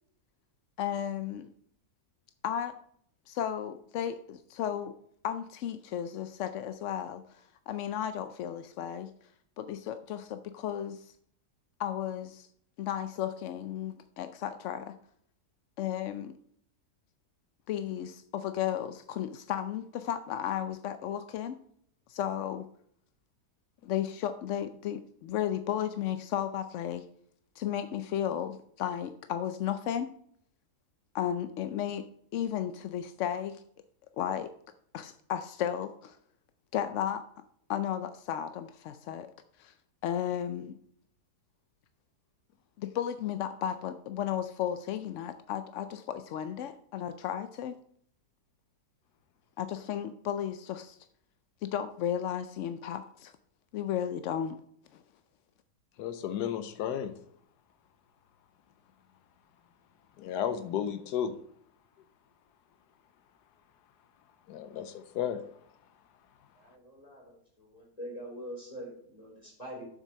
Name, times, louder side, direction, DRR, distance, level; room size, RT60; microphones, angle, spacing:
voice 1, 0.8-1.5 2.4-2.7 3.3-4.9 5.2-9.1 9.6-11.1 11.8-12.5 12.8-14.9 15.8-16.3 17.7-21.6 22.1-22.7 23.8-27.0 27.6-30.1 31.1-32.1 32.3-33.6 34.2-34.5 34.9-36.2 36.7-37.2 37.7-39.3 39.6-39.7 40.0-40.8 42.8-47.8 49.6-51.0 51.6-53.3 53.7-54.6 54.9-55.0, left 10 dB, 65° left, 10 dB, 0.7 m, -34 dB
voice 2, 56.0-57.1 60.2-61.4 64.5-65.4, left 9 dB, 85° left, 9 dB, 1.3 m, -33 dB
voice 3, 66.6-69.8, equal, 25° left, -3 dB, 4.2 m, -44 dB
7.4 x 6.5 x 6.4 m, 0.66 s
omnidirectional pair, 1.7 m